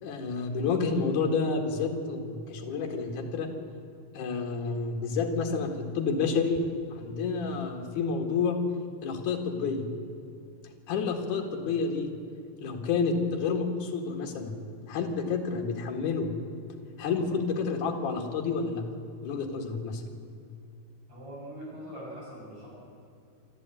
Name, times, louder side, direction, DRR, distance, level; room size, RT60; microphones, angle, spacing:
voice 1, 0.0-3.5 4.1-6.6 6.9-8.6 9.0-9.8 10.9-12.1 12.6-14.6 14.9-16.3 17.0-18.8 19.2-20.0, left 5 dB, 75° left, 2 dB, 3.4 m, -29 dB
voice 2, 21.1-22.7, equal, 55° right, -5 dB, 8.7 m, -42 dB
26.5 x 12.5 x 9.1 m, 2.5 s
omnidirectional pair, 3.6 m